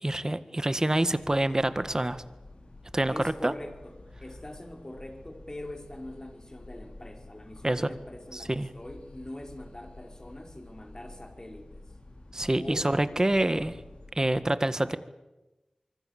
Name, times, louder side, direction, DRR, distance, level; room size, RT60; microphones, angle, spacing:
voice 1, 0.0-2.2 2.9-3.5 7.6-7.9 8.3-8.7 12.3-13.7 14.2-15.0, right 1 dB, 30° right, 12 dB, 1.7 m, -26 dB
sound 1, 1.2-14.4, left 2 dB, 70° left, 5.4 m, -50 dB
voice 2, 3.1-11.9 12.6-12.9, left 1 dB, 30° left, 4 dB, 4.8 m, -43 dB
24.5 x 24.5 x 7.4 m, 1.0 s
wide cardioid pair, 45°, 2 cm